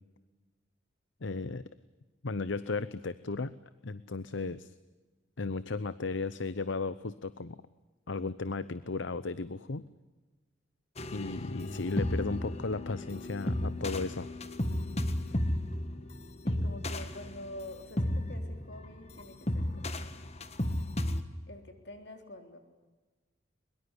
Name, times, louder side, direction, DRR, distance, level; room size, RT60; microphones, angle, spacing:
voice 1, 1.2-1.6 2.2-3.6 3.8-4.7 5.4-7.6 8.1-9.9 11.1-14.3, left 3 dB, 70° left, 15 dB, 0.8 m, -35 dB
sound 1, 11.0-21.2, left 1 dB, 30° left, 1.6 m, -34 dB
voice 2, 16.4-20.2 21.5-22.6, left 1 dB, 55° left, 6 dB, 3.8 m, -47 dB
23.0 x 22.5 x 9.8 m, 1.2 s
head